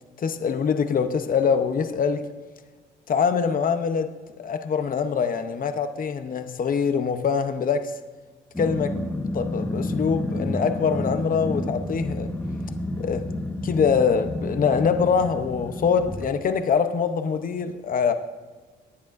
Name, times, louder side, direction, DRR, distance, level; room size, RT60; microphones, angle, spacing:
voice 1, 0.2-2.2 3.1-4.1 4.4-7.9 8.6-9.0 9.3-12.3 13.0-13.2 13.6-18.1, left 6 dB, 45° left, 0.8 m, -24 dB
Growling, 8.5-16.2, left 1 dB, 10° left, 1.2 m, -30 dB
18.0 x 10.5 x 2.6 m
cardioid pair, 90°, 20 cm